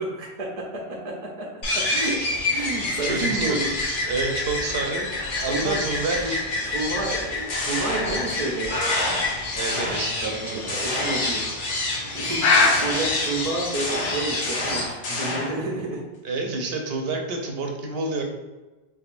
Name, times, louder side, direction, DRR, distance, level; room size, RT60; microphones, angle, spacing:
voice 1, 0.0-1.5 1.7-2.2 2.5-3.7 5.5-5.8 6.2-6.4 6.6-8.8 10.1-11.5 12.1-16.0, right 2 dB, 45° right, -2 dB, 0.6 m, -30 dB
sound 1, 1.6-14.9, left 2 dB, 55° left, 0.8 m, -26 dB
voice 2, 1.8-2.7 3.0-3.7 4.1-5.1 5.4-6.8 9.6-10.8 16.2-18.2, right 3 dB, 75° right, 2 dB, 0.8 m, -29 dB
sound 2, 7.2-8.5 8.8-10.4 10.7-11.7 12.5-15.7, left 2 dB, 85° left, 1.1 m, -30 dB
3.6 x 3.5 x 2.4 m, 1.2 s
omnidirectional pair, 1.1 m